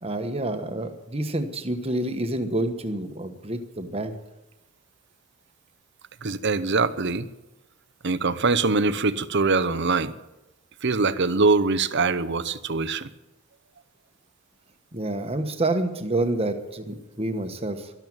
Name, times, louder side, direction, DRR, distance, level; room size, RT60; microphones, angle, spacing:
voice 1, 0.0-4.2 14.9-17.9, right 2 dB, 25° right, 7 dB, 1.3 m, -28 dB
voice 2, 6.2-7.3 8.0-10.1 10.8-13.1, right 3 dB, 50° right, 14 dB, 0.8 m, -23 dB
12.5 x 12.5 x 8.9 m, 0.99 s
head